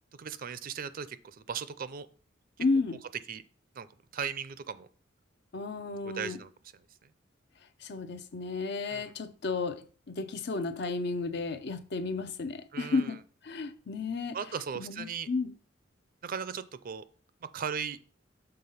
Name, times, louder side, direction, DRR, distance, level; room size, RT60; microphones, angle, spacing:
voice 1, 0.2-2.1 3.3-3.4 3.7-3.9 4.1-4.9 6.0-6.5 8.9-9.1 12.7-13.1 14.3-15.3 16.2-17.1 17.4-18.0, right 7 dB, 50° right, 0.5 m, -37 dB
voice 2, 2.6-3.0 5.5-6.4 7.8-13.2 13.4-14.4 14.7-15.5, left 3 dB, 60° left, 0.6 m, -32 dB
6.8 x 3.8 x 5.5 m
head